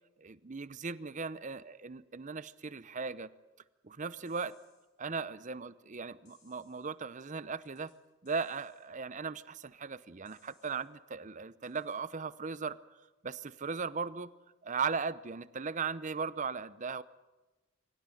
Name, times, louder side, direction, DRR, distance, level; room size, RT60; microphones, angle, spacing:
voice 1, 0.2-3.3 3.8-4.6 5.0-7.9 8.2-12.8 13.2-14.3 14.6-17.0, right 5 dB, 40° right, 16 dB, 0.7 m, -37 dB
sound 1, 4.3-4.9 6.3-6.9 7.6-8.0 8.3-8.9 10.3-10.9 11.6-12.0, left 4 dB, 40° left, 5.9 m, -68 dB
24.0 x 17.0 x 9.1 m, 1.2 s
head